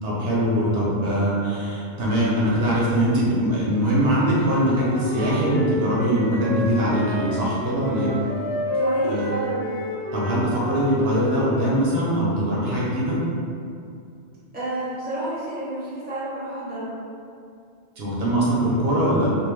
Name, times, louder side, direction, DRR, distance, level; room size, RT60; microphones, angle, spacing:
voice 1, 0.0-8.1 9.1-9.2 10.1-13.2 18.0-19.3, equal, 70° right, -6 dB, 0.8 m, -22 dB
Wind instrument woodwind instrument, 4.2-11.6, left 1 dB, 70° left, 0.9 m, -30 dB
voice 2, 7.8-8.2 8.7-9.6 14.5-16.9, right 1 dB, 10° right, -10 dB, 0.6 m, -30 dB
2.4 x 2.0 x 3.1 m, 2.4 s
omnidirectional pair, 1.1 m